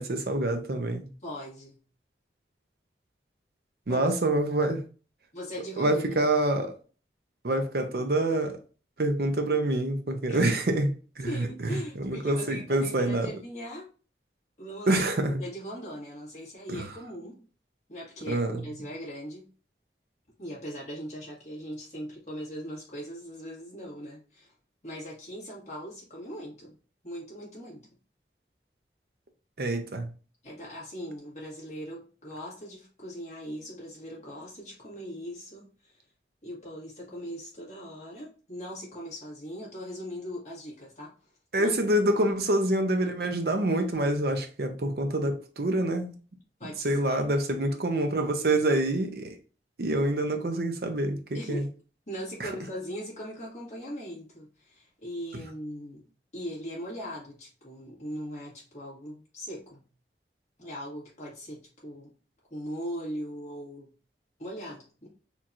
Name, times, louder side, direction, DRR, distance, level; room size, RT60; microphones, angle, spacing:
voice 1, 0.0-1.1 3.9-4.8 5.8-6.7 7.4-8.6 9.0-13.3 14.9-15.4 16.7-16.9 18.2-18.6 29.6-30.1 41.5-46.2 46.6-49.4 49.8-51.7 52.4-52.5, right 1 dB, 60° right, 0.7 m, -26 dB
voice 2, 1.2-1.8 3.9-4.1 5.3-6.1 10.3-10.4 11.3-13.9 14.6-15.0 15.4-17.4 17.9-19.5 20.4-24.5 24.8-26.7 27.0-27.9 30.4-35.9 36.4-41.1 41.6-41.7 46.6-47.2 51.3-51.7 52.1-56.1 56.3-59.8 60.6-62.1 62.5-63.9 64.4-65.1, equal, 40° left, 1.9 m, -40 dB
4.4 x 2.8 x 2.5 m
head